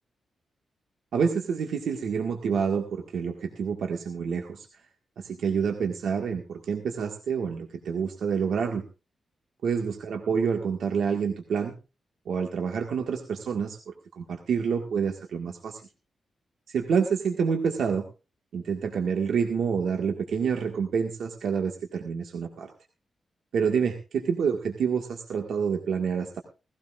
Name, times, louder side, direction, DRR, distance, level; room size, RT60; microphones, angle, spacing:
voice 1, 1.1-4.7 5.2-8.8 9.6-11.7 12.3-15.8 16.7-18.0 18.5-22.7 23.5-26.4, right 6 dB, 70° right, 3 dB, 1.7 m, -28 dB
18.0 x 16.5 x 2.5 m, 0.30 s
wide cardioid pair, 175°, 0 cm